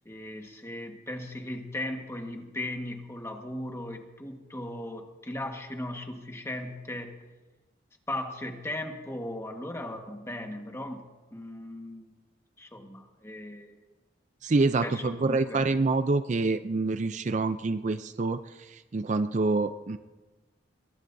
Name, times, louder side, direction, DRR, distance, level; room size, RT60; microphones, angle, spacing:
voice 1, 0.0-7.2 8.1-11.0 11.3-12.2 12.6-13.7 14.8-15.7, left 1 dB, 15° left, 3 dB, 1.4 m, -37 dB
voice 2, 14.4-20.0, right 3 dB, 40° right, 11 dB, 0.4 m, -27 dB
23.0 x 19.0 x 2.7 m, 1.2 s
head